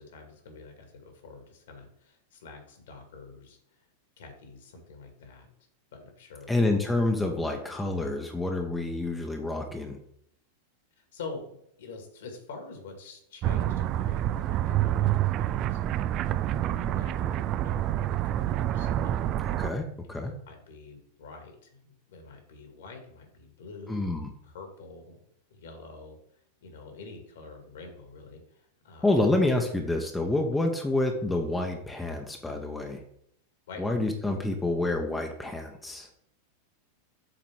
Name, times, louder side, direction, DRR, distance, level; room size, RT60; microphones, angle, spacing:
voice 1, 0.0-3.6 4.2-5.5 5.9-6.5 11.1-16.1 16.6-19.5 20.5-23.9 24.4-25.2 25.5-26.2 26.6-29.1 33.7-33.8, left 4 dB, 60° left, 4 dB, 2.1 m, -46 dB
voice 2, 6.5-10.0 19.4-20.3 23.9-24.3 29.0-33.0 33.8-36.1, left 2 dB, 5° left, 2 dB, 0.9 m, -28 dB
sound 1, 13.4-19.7, right 12 dB, 35° right, 0.3 m, -27 dB
7.6 x 4.0 x 6.1 m, 0.71 s
figure-of-eight pair, 90°, 0 cm